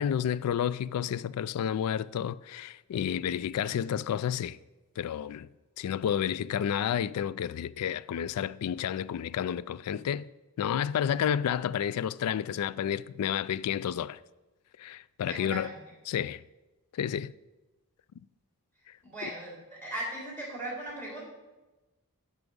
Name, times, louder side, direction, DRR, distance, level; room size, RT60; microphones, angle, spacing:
voice 1, 0.0-4.6 5.0-5.5 5.8-10.3 10.6-14.2 14.8-15.7 16.1-16.4 16.9-17.3 19.2-19.3, left 9 dB, 85° left, 0.3 m, -30 dB
voice 2, 15.2-15.7 19.0-21.2, right 1 dB, 10° left, 3.3 m, -38 dB
9.5 x 6.0 x 5.3 m
head